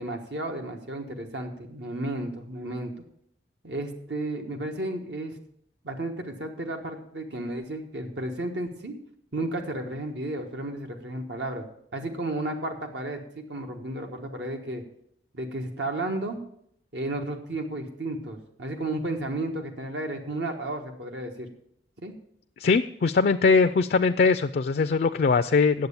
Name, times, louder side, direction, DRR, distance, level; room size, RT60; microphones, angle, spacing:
voice 1, 0.0-2.9 3.6-5.3 5.8-8.9 9.3-11.6 11.9-14.8 15.3-16.4 16.9-21.5 22.0-22.1, right 1 dB, 75° right, 3 dB, 1.4 m, -33 dB
voice 2, 22.6-25.9, left 4 dB, 55° left, 9 dB, 0.4 m, -21 dB
9.3 x 7.5 x 6.9 m, 0.70 s
head